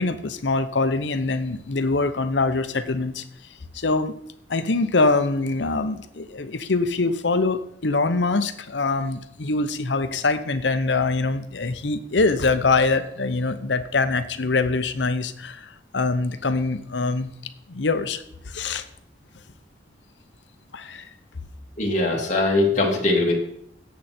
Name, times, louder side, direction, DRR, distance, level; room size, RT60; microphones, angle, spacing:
voice 1, 0.0-3.2 3.7-4.1 4.5-17.3 17.7-18.8 20.7-21.1, left 3 dB, 80° left, 11 dB, 0.9 m, -24 dB
voice 2, 21.8-23.3, left 2 dB, 40° left, -2 dB, 2.6 m, -21 dB
17.5 x 7.7 x 4.4 m, 0.73 s
head